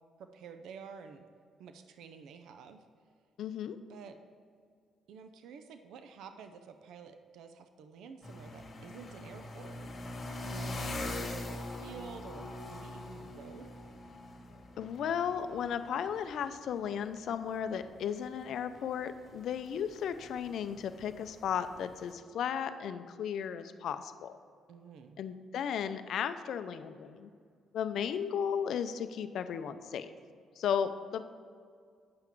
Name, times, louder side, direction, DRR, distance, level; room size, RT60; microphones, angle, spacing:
voice 1, 0.2-1.2 1.6-2.8 3.9-4.2 5.1-9.8 10.4-13.7 24.7-25.2, right 6 dB, 80° right, 8 dB, 0.5 m, -50 dB
voice 2, 3.4-3.8 14.8-24.3 25.2-27.3 27.7-30.1 30.6-31.3, left 8 dB, 70° left, 11 dB, 0.5 m, -35 dB
sound 1, 8.2-22.1, left 2 dB, 40° left, 1.7 m, -44 dB
8.6 x 5.9 x 4.5 m, 2.2 s
cardioid pair, 90°, 0 cm